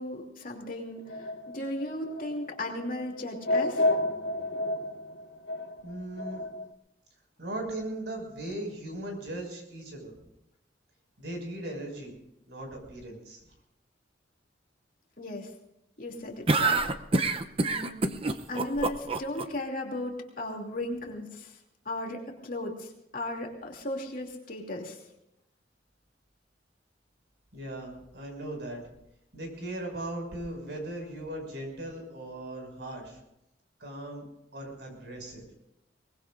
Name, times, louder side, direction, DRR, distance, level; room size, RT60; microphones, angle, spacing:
voice 1, 0.0-3.9 15.2-15.5 16.0-16.8 17.6-18.2 18.5-21.6 21.8-25.0, left 1 dB, 50° left, 1 dB, 2.8 m, -36 dB
sound 1, 1.1-6.6, left 1 dB, 65° left, 1.0 m, -31 dB
voice 2, 5.8-6.4 7.4-10.1 11.2-12.1 12.5-13.5 27.5-28.8 29.3-33.2 33.8-34.2 34.5-35.4, right 1 dB, 65° right, 1 dB, 6.1 m, -38 dB
sound 2, 16.5-19.4, right 3 dB, 30° right, 0.7 m, -26 dB
23.0 x 20.0 x 2.6 m, 0.83 s
head